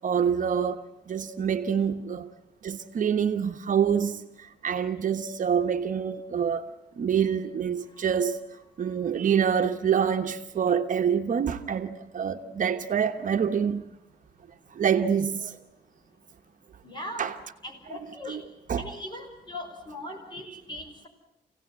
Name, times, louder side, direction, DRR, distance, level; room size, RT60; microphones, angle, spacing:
voice 1, 0.0-2.3 2.6-4.3 4.6-6.7 7.0-8.4 8.8-13.9 14.8-15.6 17.2-17.3 17.9-18.0 18.3-18.4 18.7-18.8, right 7 dB, 50° right, 1.2 m, -26 dB
voice 2, 16.8-17.3 17.6-18.4 18.8-21.1, left 1 dB, 30° left, 5.5 m, -39 dB
27.0 x 17.5 x 9.7 m
wide cardioid pair, 160°, 17 cm